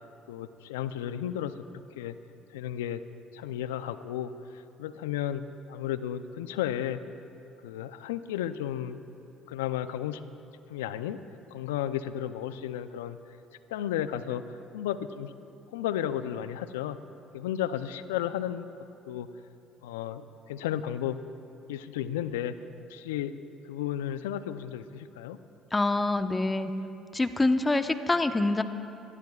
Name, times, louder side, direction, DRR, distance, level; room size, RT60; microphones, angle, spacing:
voice 1, 0.3-2.2 2.5-3.0 3.3-7.0 7.6-9.0 9.5-10.2 10.7-11.2 11.5-13.2 13.7-15.3 15.7-17.0 17.3-18.7 19.1-19.3 19.8-21.2 21.7-22.6 22.9-23.3 23.6-25.4, left 11 dB, 85° left, 12 dB, 0.6 m, -33 dB
voice 2, 25.7-26.7 27.1-28.6, left 2 dB, 20° left, 8 dB, 1.0 m, -25 dB
26.0 x 19.5 x 2.4 m, 2.8 s
hypercardioid pair, 60°, 0 cm